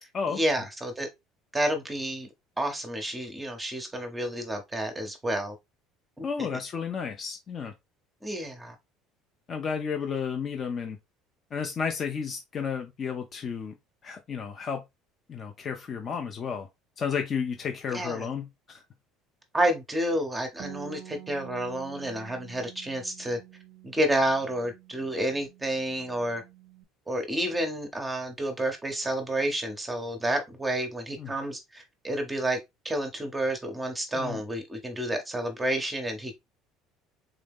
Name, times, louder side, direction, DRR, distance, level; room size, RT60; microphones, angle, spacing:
voice 1, 0.3-1.1 1.5-2.3 2.6-5.6 6.2-6.3 8.2-8.8 17.9-18.3 19.5-23.4 23.8-26.4 27.1-32.6 32.8-36.3, right 1 dB, 10° right, 0.8 m, -30 dB
voice 2, 6.2-7.7 9.5-11.0 11.5-13.7 14.0-14.8 15.3-16.7 17.0-18.8 31.2-31.3 34.1-34.4, left 6 dB, 30° left, 0.5 m, -32 dB
Bass guitar, 20.6-26.8, right 11 dB, 65° right, 0.4 m, -48 dB
3.7 x 2.7 x 3.5 m
cardioid pair, 145°, 0 cm